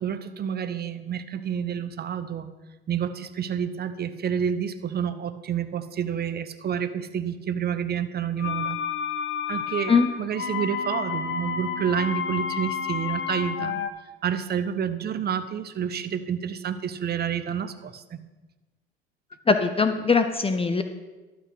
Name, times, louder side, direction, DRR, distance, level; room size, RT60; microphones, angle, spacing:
voice 1, 0.0-2.5 2.9-8.8 9.5-13.8 14.2-18.2, right 8 dB, 30° right, 11 dB, 0.9 m, -29 dB
sound 1, 8.4-13.9, left 7 dB, 40° left, 1.0 m, -30 dB
voice 2, 19.5-20.8, left 4 dB, 20° left, 8 dB, 0.8 m, -21 dB
12.0 x 6.1 x 6.3 m, 1.2 s
hypercardioid pair, 70°, 31 cm